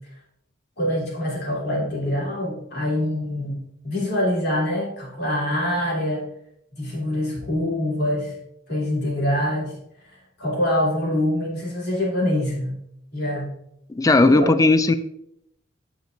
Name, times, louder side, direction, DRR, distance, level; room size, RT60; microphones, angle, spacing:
voice 1, 0.8-6.2 6.7-8.3 8.7-9.7 10.1-12.7 13.1-13.5 14.2-14.5, left 1 dB, 60° left, -4 dB, 3.0 m, -25 dB
voice 2, 13.9-14.9, left 2 dB, 20° left, 11 dB, 0.3 m, -16 dB
9.1 x 6.8 x 2.6 m, 0.77 s
head